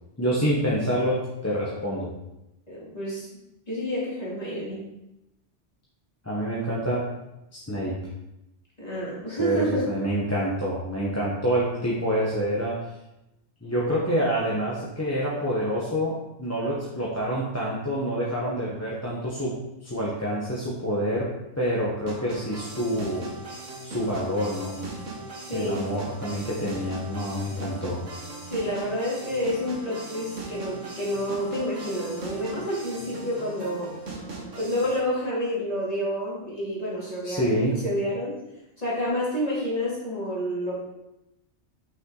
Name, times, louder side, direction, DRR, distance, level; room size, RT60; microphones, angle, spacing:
voice 1, 0.2-2.1 6.2-7.1 7.5-7.9 9.3-12.8 13.6-19.6 19.8-21.3 21.6-23.3 23.8-24.8 25.5-28.0 37.2-37.8, equal, 15° left, -6 dB, 1.0 m, -27 dB
voice 2, 2.7-3.3 3.7-4.9 8.8-9.9 25.5-25.9 28.5-33.9 34.6-38.4 38.8-40.8, equal, 30° left, -8 dB, 2.6 m, -29 dB
sound 1, 22.1-35.0, right 2 dB, 80° right, 1.7 m, -39 dB
6.0 x 5.7 x 3.9 m, 0.91 s
omnidirectional pair, 1.3 m